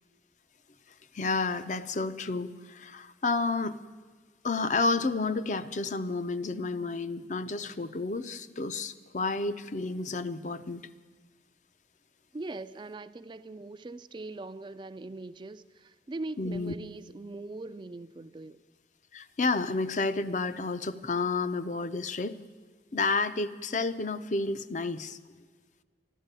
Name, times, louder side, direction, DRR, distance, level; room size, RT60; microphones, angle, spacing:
voice 1, 1.1-3.8 4.4-10.8 16.4-16.7 19.1-22.4 22.9-25.2, left 3 dB, 40° left, 0.5 m, -30 dB
voice 2, 12.3-18.6, right 2 dB, 25° right, 0.4 m, -41 dB
13.0 x 12.0 x 9.0 m
head